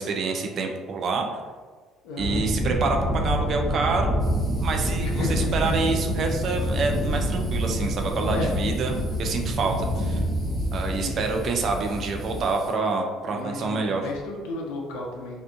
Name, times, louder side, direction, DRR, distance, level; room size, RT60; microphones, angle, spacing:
voice 1, 0.0-1.4 2.2-8.9 9.2-10.2 10.7-14.0, right 4 dB, 50° right, 3 dB, 0.3 m, -27 dB
voice 2, 2.0-2.4 5.0-5.8 8.1-8.5 10.9-11.3 13.2-15.4, left 2 dB, 65° left, 0 dB, 0.4 m, -34 dB
sound 1, 2.2-12.4, equal, 15° left, 0.7 m, -27 dB
sound 2, 4.2-12.7, equal, 5° right, 1.0 m, -48 dB
2.4 x 2.2 x 2.4 m, 1.4 s
figure-of-eight pair, 50°, 0 cm